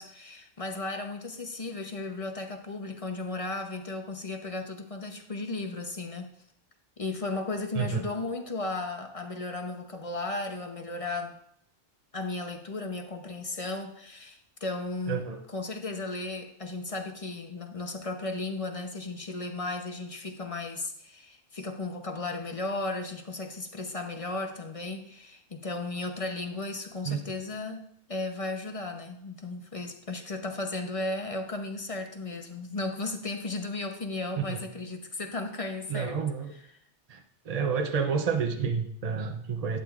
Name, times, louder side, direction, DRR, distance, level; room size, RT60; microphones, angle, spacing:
voice 1, 0.0-6.3 7.0-11.4 12.1-36.2 36.5-36.6, left 2 dB, 35° left, 5 dB, 0.8 m, -35 dB
voice 2, 15.1-15.4 27.1-27.2 34.4-34.6 35.9-36.5 37.1-37.2 37.5-39.8, right 6 dB, 40° right, 6 dB, 0.7 m, -29 dB
11.0 x 8.8 x 2.4 m, 0.71 s
omnidirectional pair, 1.2 m